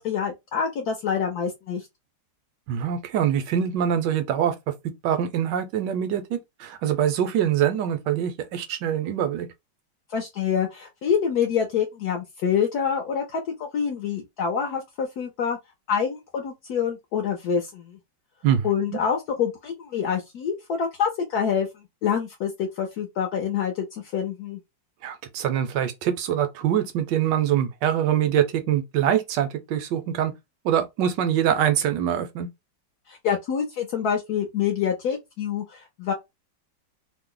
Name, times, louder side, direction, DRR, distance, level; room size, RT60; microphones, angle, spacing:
voice 1, 0.0-1.9 10.1-15.6 15.9-18.0 18.6-24.6 33.1-36.1, left 7 dB, 70° left, 1.0 m, -26 dB
voice 2, 2.7-4.5 5.0-9.5 18.4-18.7 25.0-30.3 30.6-32.5, right 9 dB, 75° right, 1.2 m, -24 dB
3.0 x 2.0 x 3.7 m
omnidirectional pair, 2.0 m